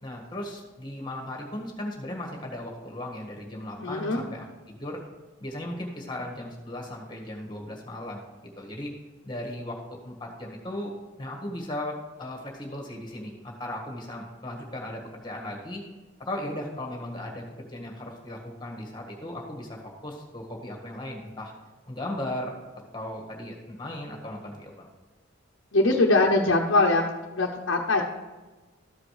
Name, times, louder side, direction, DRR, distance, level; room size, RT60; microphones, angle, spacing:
voice 1, 0.0-5.0 5.4-8.2 8.6-8.9 9.2-10.9 11.2-15.8 16.2-21.5 21.9-22.5 22.9-24.9, left 1 dB, 20° left, 0 dB, 1.7 m, -37 dB
voice 2, 3.8-4.2 25.7-27.0 27.3-28.0, left 2 dB, 65° left, -1 dB, 0.9 m, -22 dB
13.5 x 5.1 x 4.9 m, 1.2 s
head